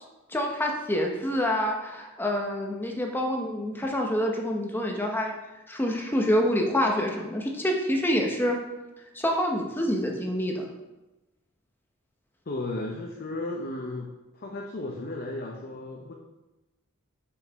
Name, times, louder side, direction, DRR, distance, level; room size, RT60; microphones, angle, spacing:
voice 1, 0.3-5.3 5.7-8.6 9.1-10.6, equal, 10° left, 1 dB, 0.8 m, -27 dB
voice 2, 12.5-16.1, left 2 dB, 45° left, 0 dB, 0.7 m, -34 dB
6.3 x 5.7 x 3.5 m, 1.0 s
head